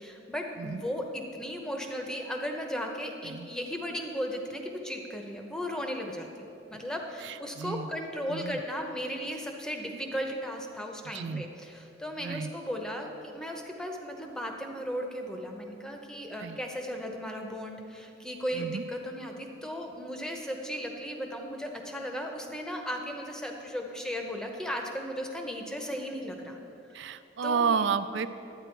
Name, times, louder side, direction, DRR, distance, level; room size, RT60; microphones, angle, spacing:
voice 1, 0.0-26.6 27.4-27.9, equal, 5° left, 2 dB, 0.7 m, -36 dB
voice 2, 7.2-7.9 8.3-8.6 11.1-11.5 12.2-12.5 16.4-16.6 18.5-18.8 26.9-28.3, right 6 dB, 65° right, 13 dB, 0.3 m, -31 dB
11.0 x 9.0 x 4.5 m, 3.0 s
head